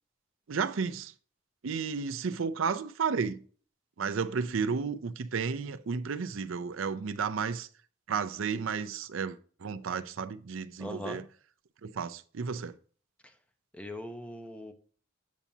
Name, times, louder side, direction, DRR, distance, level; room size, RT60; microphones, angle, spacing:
voice 1, 0.5-1.1 1.6-3.4 4.0-7.7 8.1-11.2 11.8-12.7, right 5 dB, 75° right, 0.5 m, -32 dB
voice 2, 10.8-11.2 13.7-14.7, left 1 dB, 5° left, 0.7 m, -40 dB
8.5 x 7.1 x 2.7 m
head